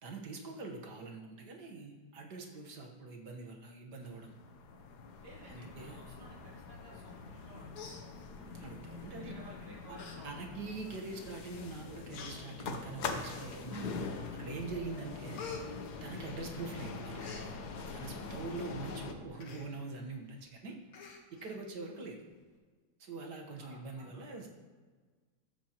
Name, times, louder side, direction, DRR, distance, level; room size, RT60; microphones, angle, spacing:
voice 1, 0.0-4.4 5.5-6.1 8.5-9.4 10.2-15.4 16.0-20.8 21.3-22.2 23.0-24.5, right 3 dB, 50° right, 1 dB, 1.8 m, -44 dB
sound 1, 4.0-19.1, left 4 dB, 60° left, 1.2 m, -44 dB
voice 2, 5.2-8.0 9.1-11.0 20.2-20.4 23.6-24.4, equal, 70° right, -6 dB, 4.0 m, -55 dB
Human voice, 7.3-7.4 7.7-8.6 9.4-9.5 9.9-10.2 10.6-10.7 11.5-11.6 12.1-12.4 13.2-13.8 14.3-14.6 14.9-16.6 16.9-17.5 19.4-19.7 20.1-20.2 20.4-20.6 20.9-21.6 21.9-22.0, left 4 dB, 75° left, 2.2 m, -48 dB
14.5 x 10.0 x 3.0 m, 1.5 s
omnidirectional pair, 2.4 m